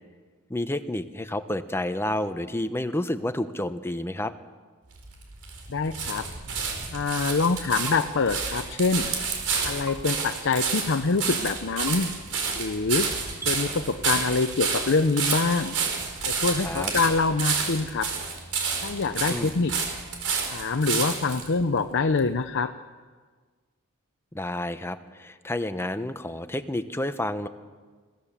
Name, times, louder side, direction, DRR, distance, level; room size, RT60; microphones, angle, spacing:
voice 1, 0.5-4.3 16.6-16.9 19.3-19.6 24.3-27.5, left 1 dB, 10° left, 10 dB, 0.9 m, -30 dB
sound 1, 4.9-21.5 22.2-22.3, right 5 dB, 85° right, 4.6 m, -30 dB
voice 2, 5.7-6.3 6.9-9.1 9.6-12.1 12.5-13.1 13.5-15.7 16.3-18.1 18.8-19.8 20.5-22.7, left 4 dB, 55° left, 8 dB, 0.7 m, -25 dB
sound 2, 7.8-8.0 9.8-10.0 11.8-12.0 13.4-13.5, right 2 dB, 15° right, 2.2 m, -38 dB
22.0 x 17.0 x 7.4 m, 1.5 s
head